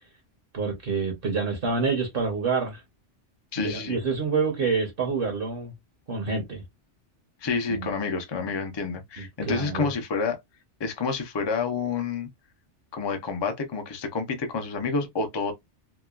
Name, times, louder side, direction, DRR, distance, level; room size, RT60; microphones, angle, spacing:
voice 1, 0.5-2.8 3.6-5.7 6.1-6.6 7.7-7.9 9.2-9.9, right 4 dB, 55° right, 0.9 m, -27 dB
voice 2, 3.5-4.0 7.4-10.4 10.8-12.3 12.9-15.5, left 4 dB, 35° left, 0.4 m, -29 dB
2.9 x 2.2 x 2.2 m
omnidirectional pair, 1.2 m